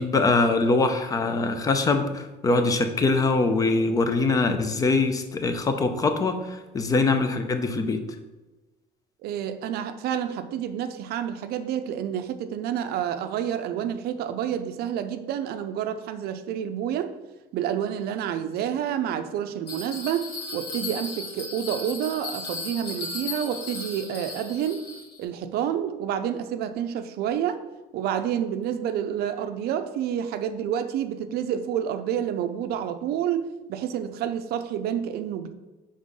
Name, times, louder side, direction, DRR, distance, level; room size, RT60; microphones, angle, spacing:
voice 1, 0.0-8.0, left 3 dB, 20° left, 8 dB, 0.5 m, -23 dB
voice 2, 9.2-17.1 17.5-24.8 25.2-27.6 27.9-35.5, right 9 dB, 65° right, 9 dB, 0.5 m, -29 dB
Bell, 19.7-25.2, left 3 dB, 60° left, 1.9 m, -36 dB
5.3 x 3.6 x 5.2 m, 1.1 s
cardioid pair, 165°, 18 cm